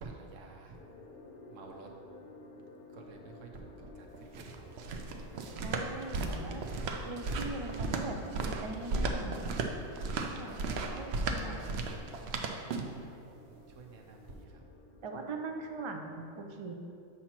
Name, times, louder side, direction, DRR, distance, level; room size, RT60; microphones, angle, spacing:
voice 1, 0.0-0.8 1.5-1.9 2.9-5.7 10.8-11.1 12.9-14.6, right 3 dB, 80° right, 2 dB, 1.1 m, -51 dB
sound 1, 0.7-16.1, left 2 dB, 50° left, 0.9 m, -54 dB
sound 2, 4.1-13.0, right 3 dB, 65° right, 0.8 m, -35 dB
voice 2, 5.6-6.7 7.0-9.4 10.3-11.7 15.0-16.7, right 3 dB, 50° right, 3 dB, 0.3 m, -41 dB
7.6 x 2.8 x 5.8 m, 2.4 s
omnidirectional pair, 1.3 m